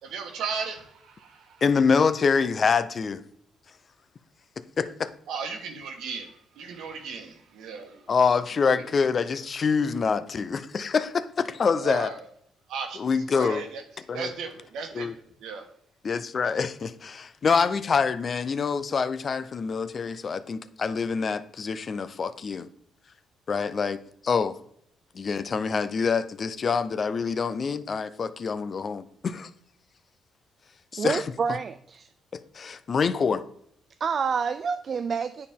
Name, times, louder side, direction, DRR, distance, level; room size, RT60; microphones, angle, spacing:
voice 1, 0.0-1.6 5.3-8.1 8.7-8.8 11.8-12.2 12.7-13.1 13.3-13.8 14.1-15.1 15.4-15.7, right 5 dB, 80° right, 5 dB, 1.3 m, -35 dB
voice 2, 1.6-3.2 4.8-5.1 8.1-12.1 13.0-13.6 14.1-14.3 14.9-15.1 16.0-22.7 23.5-24.6 25.1-29.5 30.9-31.6 32.3-33.4, left 5 dB, 45° left, 13 dB, 0.5 m, -26 dB
voice 3, 31.0-32.1 34.0-35.5, right 6 dB, 50° right, 10 dB, 0.3 m, -28 dB
9.6 x 4.3 x 3.6 m, 0.68 s
cardioid pair, 90°, 0 cm